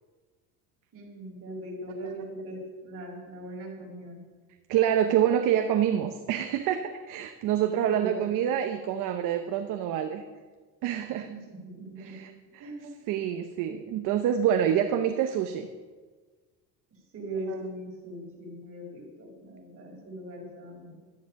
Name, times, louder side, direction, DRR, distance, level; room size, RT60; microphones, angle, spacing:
voice 1, 0.9-4.2 7.9-8.3 11.2-11.4 11.8-12.2 12.6-13.0 17.1-21.0, right 1 dB, 40° right, -2 dB, 5.1 m, -40 dB
voice 2, 4.7-10.2 10.8-11.3 12.0-12.3 13.1-15.7 17.5-17.6, right 10 dB, 60° right, 7 dB, 0.9 m, -26 dB
12.5 x 10.0 x 5.8 m, 1.4 s
cardioid pair, 130°, 35 cm